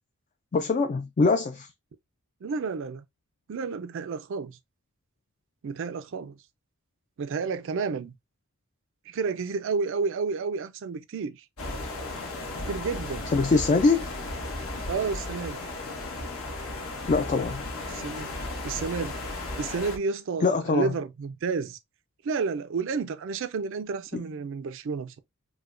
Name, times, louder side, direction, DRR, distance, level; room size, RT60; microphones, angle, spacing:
voice 1, 0.5-1.7 13.3-14.1 17.1-17.6 20.4-20.9 24.1-24.2, left 4 dB, 35° left, 0.3 m, -23 dB
voice 2, 2.4-3.0 3.5-4.6 5.6-6.4 7.2-8.2 9.1-11.4 12.7-13.3 14.9-15.6 17.9-18.3 18.6-19.1 19.6-21.8 22.2-25.2, right 5 dB, 60° right, 0.4 m, -31 dB
sound 1, 11.6-20.0, left 2 dB, 80° left, 1.2 m, -35 dB
4.7 x 2.1 x 2.4 m
head